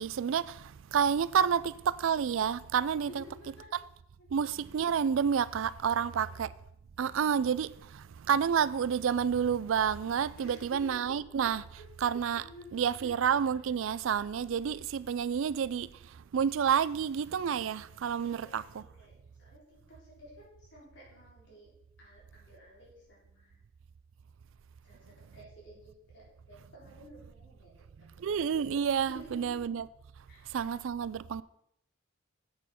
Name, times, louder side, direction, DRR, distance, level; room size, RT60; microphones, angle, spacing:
voice 1, 0.0-3.2 4.3-6.5 7.0-11.7 12.0-12.4 12.7-15.9 16.3-18.8 28.2-29.8 30.5-31.4, right 7 dB, 75° right, 0.4 m, -29 dB
voice 2, 3.1-3.9 4.2-4.3 5.9-6.5 10.4-11.2 11.5-11.9 12.4-13.2 18.2-21.7 22.0-23.6 24.8-28.3 29.1-29.6 30.3-30.7, equal, 60° left, 4.6 m, -53 dB
8.3 x 6.9 x 5.8 m
head